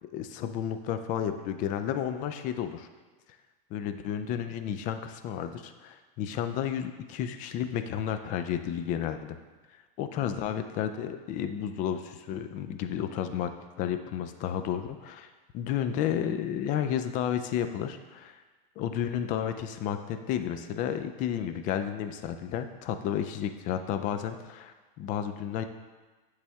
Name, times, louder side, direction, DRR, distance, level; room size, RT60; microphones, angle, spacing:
voice 1, 0.1-2.9 3.7-9.4 10.0-18.4 18.8-25.6, left 9 dB, 30° left, 9 dB, 0.3 m, -32 dB
8.1 x 3.3 x 3.5 m, 1.3 s
hypercardioid pair, 120°, 29 cm